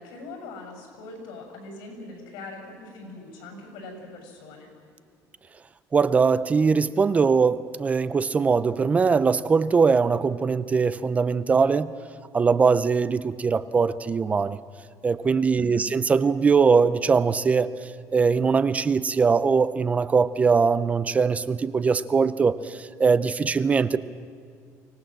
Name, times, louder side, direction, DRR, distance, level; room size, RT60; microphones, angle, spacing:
voice 1, 0.0-4.7 15.6-15.9, left 2 dB, 85° left, 4 dB, 7.1 m, -41 dB
voice 2, 5.9-11.9 12.3-14.6 15.0-17.7 18.1-22.6 23.0-24.0, right 5 dB, 20° right, 16 dB, 0.5 m, -21 dB
24.5 x 19.0 x 7.6 m, 2.2 s
cardioid pair, 165°, 7 cm